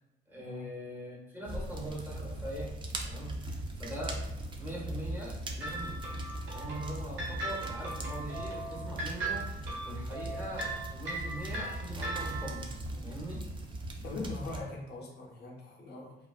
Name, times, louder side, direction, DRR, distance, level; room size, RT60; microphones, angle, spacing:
voice 1, 0.3-2.8 3.0-4.3 4.6-6.0 6.5-12.7 13.0-13.5, right 1 dB, 10° right, -5 dB, 0.8 m, -42 dB
sound 1, 1.4-14.6, right 1 dB, 25° right, 0.3 m, -39 dB
sound 2, 5.6-12.7, right 2 dB, 80° right, 0.7 m, -39 dB
voice 2, 14.0-16.2, left 2 dB, 55° left, -2 dB, 0.5 m, -41 dB
2.3 x 2.2 x 2.3 m, 0.95 s
cardioid pair, 90°, 20 cm